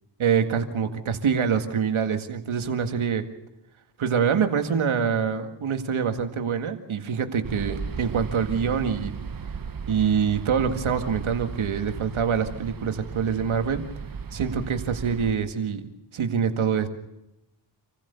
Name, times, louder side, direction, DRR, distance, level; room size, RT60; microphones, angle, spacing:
voice 1, 0.2-3.3 4.0-9.2 9.9-13.9 14.3-15.9 16.1-16.9, right 7 dB, 90° right, 7 dB, 2.0 m, -25 dB
sound 1, 7.4-15.4, right 6 dB, 45° right, 1.2 m, -36 dB
27.5 x 15.5 x 6.9 m, 0.90 s
cardioid pair, 50°, 47 cm